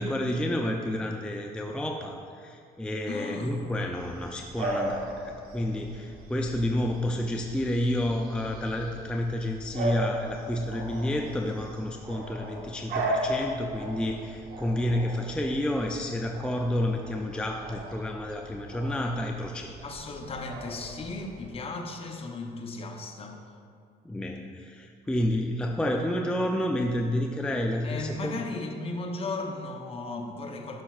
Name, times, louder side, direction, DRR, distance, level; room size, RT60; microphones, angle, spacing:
voice 1, 0.0-19.8 24.0-28.4, left 1 dB, 5° left, 2 dB, 0.3 m, -30 dB
voice 2, 3.1-3.6 19.8-23.4 27.8-30.8, left 2 dB, 35° left, 3 dB, 0.8 m, -36 dB
Bark / Bird vocalization bird call bird song, 3.9-21.5, right 1 dB, 60° right, 1.1 m, -37 dB
11.5 x 5.6 x 2.4 m, 2.3 s
cardioid pair, 110°, 17 cm